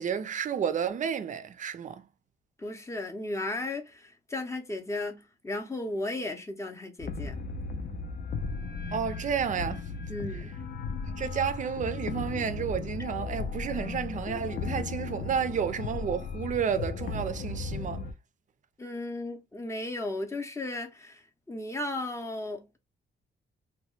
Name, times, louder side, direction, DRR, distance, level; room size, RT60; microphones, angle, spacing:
voice 1, 0.0-2.1 8.9-9.9 11.1-18.0, right 7 dB, 40° right, 0.4 m, -31 dB
voice 2, 2.6-7.4 10.1-10.5 18.8-22.7, left 2 dB, 15° left, 0.6 m, -35 dB
sound 1, 7.0-18.1, left 4 dB, 55° left, 0.5 m, -36 dB
2.8 x 2.2 x 3.0 m
cardioid pair, 145°, 20 cm